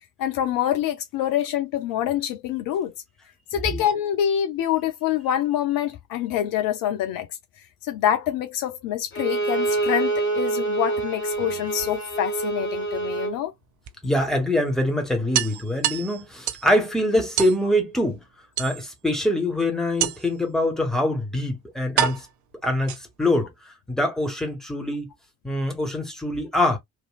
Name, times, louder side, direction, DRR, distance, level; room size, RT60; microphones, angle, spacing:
voice 1, 0.2-2.9 3.5-7.3 7.8-13.5, left 11 dB, 55° left, 0.7 m, -26 dB
Bowed string instrument, 9.1-13.4, right 3 dB, 30° left, 1.7 m, -26 dB
sound 1, 11.2-12.4 13.9-14.0 14.3-14.4 14.7-14.8 15.3-16.7 17.4-17.6 18.6-19.1 20.0-20.4 21.3-21.4 22.0-23.3, right 11 dB, 50° right, 0.5 m, -28 dB
voice 2, 14.0-18.2 18.6-22.3 22.6-25.1 25.4-26.8, left 1 dB, ahead, 1.3 m, -24 dB
3.1 x 2.5 x 2.3 m
figure-of-eight pair, 40°, 40 cm